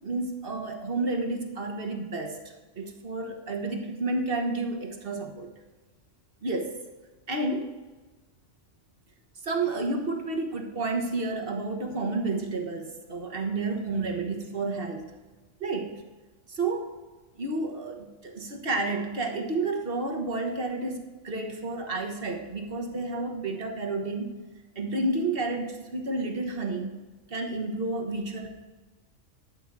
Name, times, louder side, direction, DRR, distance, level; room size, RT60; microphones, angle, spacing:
voice 1, 0.0-2.4 2.7-5.5 6.4-6.7 7.3-7.8 9.4-15.1 15.6-15.9 16.5-16.9 17.4-24.4 24.7-27.0 27.3-28.5, right 2 dB, 45° right, 4 dB, 1.5 m, -30 dB
11.5 x 8.0 x 4.7 m, 1.3 s
omnidirectional pair, 1.3 m